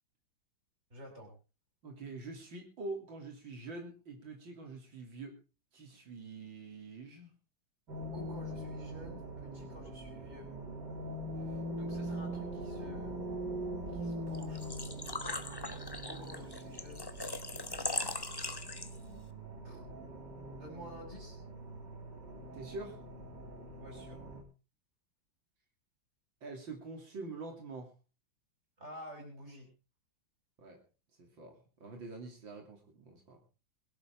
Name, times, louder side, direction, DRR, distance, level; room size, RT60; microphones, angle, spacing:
voice 1, 0.9-1.3 8.1-10.5 11.4-13.2 13.9-15.0 16.0-18.2 19.6-19.8 20.6-21.4 23.8-24.2 28.8-29.7, equal, 35° right, 2 dB, 6.3 m, -51 dB
voice 2, 1.8-5.3 5.7-7.3 22.5-23.0 26.4-27.9 30.6-30.8 31.2-33.4, right 3 dB, 85° right, 2 dB, 3.6 m, -45 dB
sound 1, 7.9-24.4, right 1 dB, 65° right, 3.7 m, -42 dB
Engine / Trickle dribble / Fill (with liquid), 14.3-19.2, left 2 dB, 20° left, 0.8 m, -40 dB
22.0 x 12.0 x 3.6 m, 0.33 s
omnidirectional pair, 2.0 m